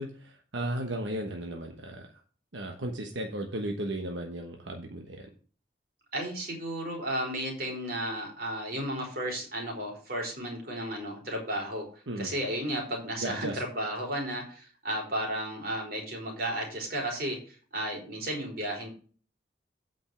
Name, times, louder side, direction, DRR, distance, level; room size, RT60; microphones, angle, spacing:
voice 1, 0.0-2.1 2.5-5.3 12.1-12.3 13.2-13.6, right 1 dB, 85° right, 3 dB, 1.2 m, -35 dB
voice 2, 6.1-11.9 12.2-18.9, right 1 dB, 50° right, 0 dB, 3.8 m, -33 dB
8.7 x 5.4 x 6.0 m, 0.40 s
head